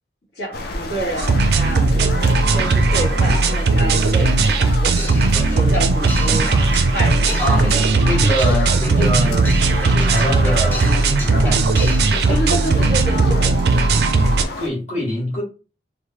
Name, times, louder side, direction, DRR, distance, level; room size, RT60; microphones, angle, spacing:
voice 1, 0.3-6.5 6.9-8.3 12.3-13.9, right 1 dB, 70° left, -4 dB, 1.3 m, -29 dB
sound 1, 0.5-14.7, left 2 dB, 55° left, 0.5 m, -32 dB
sound 2, 1.2-14.4, right 3 dB, 60° right, 0.4 m, -17 dB
sound 3, 5.0-12.4, equal, 10° left, 0.7 m, -33 dB
voice 2, 8.0-9.5 9.8-11.7 14.6-15.4, equal, 35° left, -5 dB, 1.5 m, -24 dB
3.2 x 2.1 x 2.8 m, 0.32 s
head